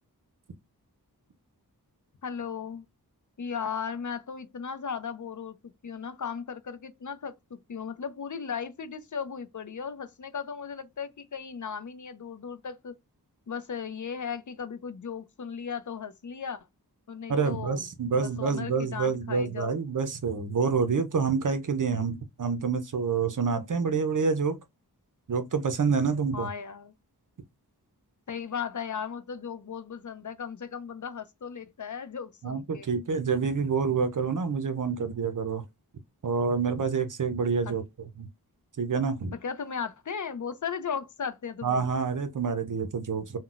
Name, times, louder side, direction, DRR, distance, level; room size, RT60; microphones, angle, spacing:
voice 1, 2.2-2.9 3.4-5.6 5.8-12.9 13.5-16.7 17.1-17.8 18.2-19.8 26.3-26.9 28.3-32.9 37.6-37.7 39.4-41.8, left 6 dB, 50° left, 0.5 m, -36 dB
voice 2, 17.3-24.6 25.3-26.5 32.4-35.6 36.2-37.8 38.2-38.3 38.8-39.3 41.6-43.4, right 5 dB, 55° right, 0.5 m, -27 dB
3.7 x 2.1 x 2.4 m
wide cardioid pair, 65°, 39 cm